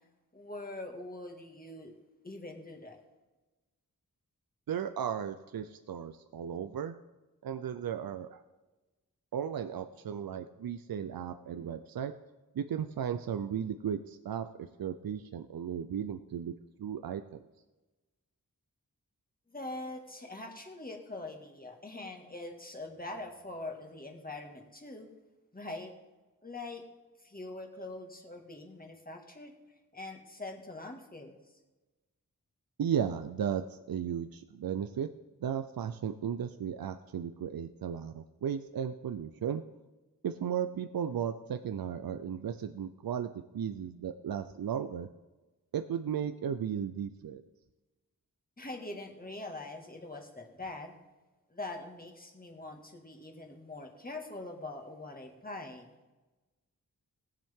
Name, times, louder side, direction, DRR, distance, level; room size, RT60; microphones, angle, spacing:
voice 1, 0.3-1.9 2.2-3.0 19.5-25.1 25.5-25.9 26.4-26.8 27.2-29.5 29.9-31.4 48.6-50.9 51.5-55.9, left 2 dB, 25° left, 2 dB, 1.9 m, -43 dB
voice 2, 4.7-6.9 7.4-8.4 9.3-12.1 12.5-14.5 14.8-16.5 16.8-17.4 32.8-35.1 35.4-39.6 40.2-43.3 43.5-45.1 45.7-47.4, right 8 dB, 80° right, 9 dB, 0.6 m, -35 dB
18.5 x 7.5 x 3.7 m, 1.1 s
wide cardioid pair, 80°, 35 cm